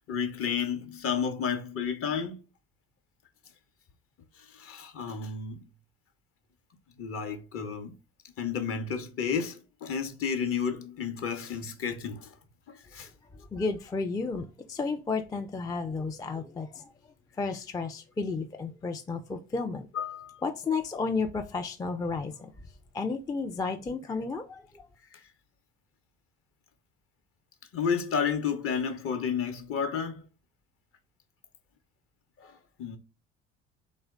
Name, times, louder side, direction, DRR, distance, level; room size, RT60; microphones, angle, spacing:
voice 1, 0.1-2.4 4.4-5.7 7.0-7.9 8.4-12.3 12.7-13.1 19.9-20.4 25.1-25.2 27.7-30.2 32.4-33.0, left 6 dB, 45° left, 0.8 m, -31 dB
voice 2, 13.5-19.9 20.4-22.5 22.9-24.9, left 4 dB, 10° left, 0.3 m, -32 dB
3.0 x 2.1 x 3.5 m
hypercardioid pair, 55°, 32 cm